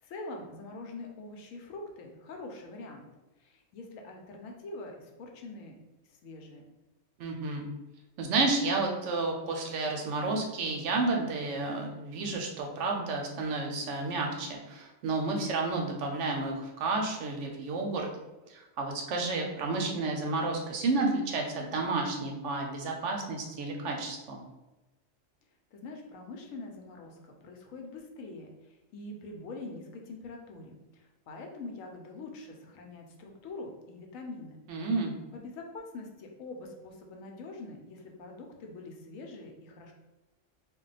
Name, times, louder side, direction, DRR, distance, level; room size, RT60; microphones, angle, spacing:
voice 1, 0.0-3.1 3.4-5.8 6.0-6.7 25.7-34.6 35.3-39.9, left 2 dB, 90° left, 2 dB, 1.0 m, -44 dB
voice 2, 7.2-7.7 8.2-18.1 18.5-24.4 34.7-35.1, right 3 dB, 70° right, 1 dB, 0.9 m, -31 dB
2.3 x 2.2 x 3.9 m, 1.1 s
omnidirectional pair, 1.4 m